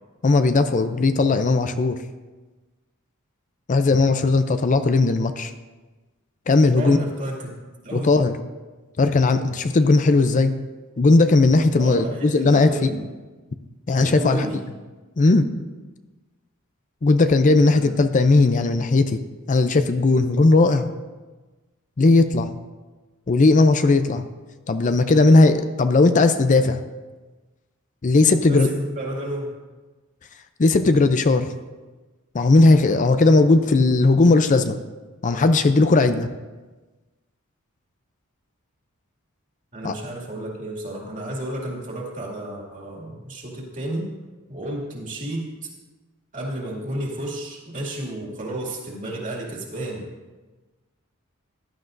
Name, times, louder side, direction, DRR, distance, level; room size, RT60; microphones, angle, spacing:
voice 1, 0.2-2.0 3.7-5.5 6.5-7.0 7.9-8.4 9.0-10.5 11.0-12.9 13.9-14.5 15.2-15.5 17.0-19.2 19.5-20.9 22.0-22.6 23.3-24.3 24.7-26.8 28.0-28.7 30.6-31.5 32.3-34.8 35.2-36.3 39.8-39.9, left 3 dB, 35° left, 9 dB, 0.5 m, -17 dB
voice 2, 6.7-7.5 7.8-8.1 11.8-13.1 14.0-14.6 17.6-17.9 28.5-29.6 39.7-44.1 44.5-45.7 46.3-50.0, right 1 dB, 40° right, -2 dB, 2.4 m, -31 dB
15.0 x 11.5 x 2.6 m, 1.2 s
head